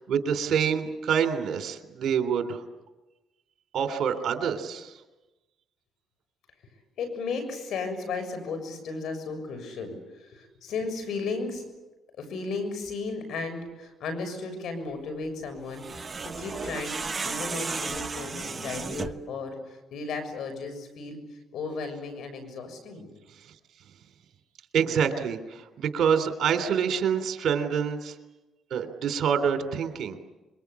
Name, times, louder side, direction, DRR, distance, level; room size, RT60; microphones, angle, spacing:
voice 1, 0.0-2.6 3.7-4.9 24.7-28.1 28.7-30.2, right 7 dB, 65° right, 7 dB, 3.4 m, -26 dB
voice 2, 7.0-11.7 12.2-23.1, left 4 dB, 75° left, 7 dB, 6.9 m, -35 dB
sound 1, 15.7-19.3, right 4 dB, 30° right, 1.2 m, -34 dB
26.5 x 23.5 x 8.4 m, 1.1 s
cardioid pair, 90°, 0 cm